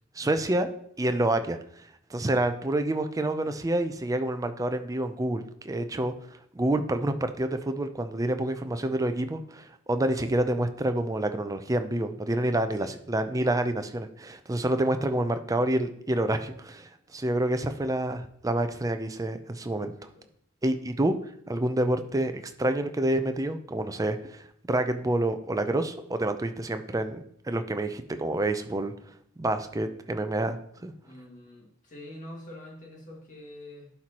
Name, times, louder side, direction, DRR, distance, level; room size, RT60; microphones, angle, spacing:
voice 1, 0.2-0.7 1.0-1.6 2.1-6.1 6.5-19.9 20.6-21.2 21.5-28.9 29.4-30.9, right 1 dB, 15° right, 8 dB, 0.5 m, -28 dB
voice 2, 19.7-20.3 31.0-33.9, left 1 dB, 40° left, -1 dB, 1.9 m, -46 dB
11.5 x 4.6 x 2.9 m, 0.68 s
head